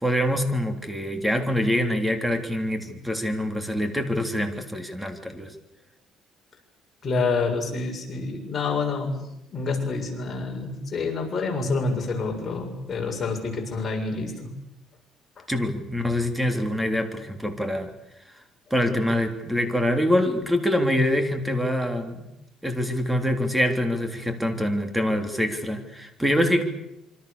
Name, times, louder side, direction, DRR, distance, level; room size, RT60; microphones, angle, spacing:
voice 1, 0.0-5.5 15.5-17.9 18.7-22.3 22.6-26.6, left 1 dB, 5° right, 6 dB, 3.5 m, -25 dB
voice 2, 7.0-9.2 9.5-14.5 15.4-15.5, left 4 dB, 35° left, 1 dB, 7.1 m, -27 dB
27.0 x 25.0 x 6.9 m, 0.88 s
cardioid pair, 120°, 0 cm